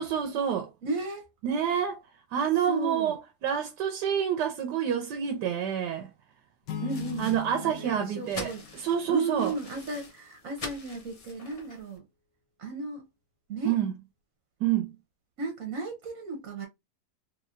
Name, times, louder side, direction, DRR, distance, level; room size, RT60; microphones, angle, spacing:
voice 1, 0.0-0.7 1.4-2.0 2.3-6.1 7.2-9.5 13.6-13.9 14.6-14.9, right 9 dB, 80° right, 1.3 m, -28 dB
voice 2, 0.8-1.3 2.7-3.2 6.8-7.3 7.6-8.6 9.1-12.0 12.6-13.0 13.5-13.7 15.4-16.7, right 3 dB, 55° right, 1.1 m, -34 dB
sound 1, 6.7-9.5, left 8 dB, 90° left, 1.3 m, -40 dB
sound 2, 6.9-12.0, left 3 dB, 65° left, 0.3 m, -45 dB
3.3 x 3.2 x 2.5 m
omnidirectional pair, 1.8 m